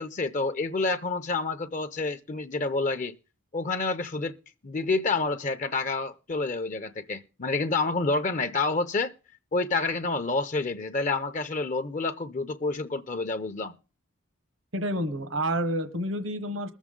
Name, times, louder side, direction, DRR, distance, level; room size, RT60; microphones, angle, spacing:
voice 1, 0.0-3.1 3.5-4.4 4.6-9.1 9.5-13.7, left 3 dB, 40° left, 0.6 m, -28 dB
voice 2, 14.7-16.7, right 1 dB, 75° right, 1.2 m, -29 dB
21.0 x 7.2 x 3.7 m
head